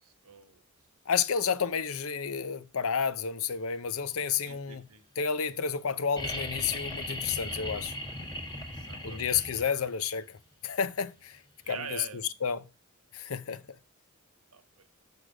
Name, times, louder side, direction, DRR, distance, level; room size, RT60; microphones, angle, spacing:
voice 1, 0.0-0.6 4.4-5.0 8.5-9.5 11.6-12.2 14.5-14.9, right 6 dB, 90° right, 1.2 m, -45 dB
voice 2, 1.1-4.8 5.2-8.0 9.0-10.4 10.6-11.4 11.7-12.0 12.4-12.7 13.1-13.6, left 6 dB, 70° left, 0.6 m, -31 dB
sound 1, 6.2-9.9 11.6-11.7, left 1 dB, 20° left, 1.5 m, -37 dB
6.7 x 6.4 x 4.9 m
head